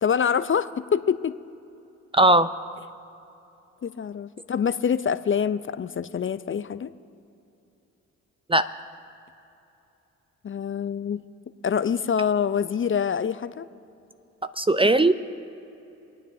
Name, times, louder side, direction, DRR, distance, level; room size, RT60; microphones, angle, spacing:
voice 1, 0.0-1.3 3.8-6.9 10.4-11.2 11.6-13.7, left 7 dB, 35° left, 13 dB, 0.5 m, -25 dB
voice 2, 2.1-2.5 8.5-8.7 14.6-15.1, right 2 dB, 15° right, 11 dB, 0.5 m, -18 dB
27.5 x 9.1 x 2.7 m, 2.9 s
hypercardioid pair, 40°, 37 cm